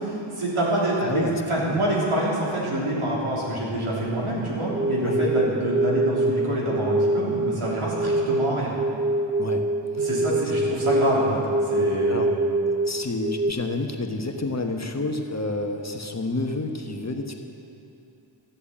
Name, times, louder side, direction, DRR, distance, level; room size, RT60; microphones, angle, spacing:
voice 1, 0.0-8.7 10.0-12.3, right 1 dB, 85° right, -6 dB, 3.5 m, -26 dB
voice 2, 1.0-1.8 5.0-5.2 5.4-5.6 9.4-9.6 9.9-10.0 12.1-12.3 12.8-17.3, left 2 dB, 35° left, 4 dB, 1.1 m, -29 dB
sound 1, 4.7-13.5, right 1 dB, 15° right, 0.5 m, -25 dB
13.5 x 8.0 x 8.6 m, 2.7 s
wide cardioid pair, 65°, 49 cm